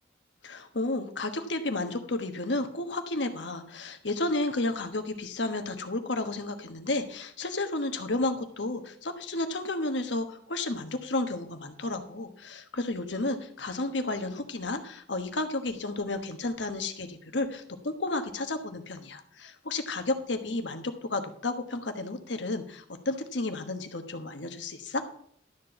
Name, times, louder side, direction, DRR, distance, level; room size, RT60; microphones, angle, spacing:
voice 1, 0.4-25.0, left 2 dB, 65° left, 7 dB, 1.3 m, -32 dB
12.5 x 4.5 x 7.7 m, 0.63 s
head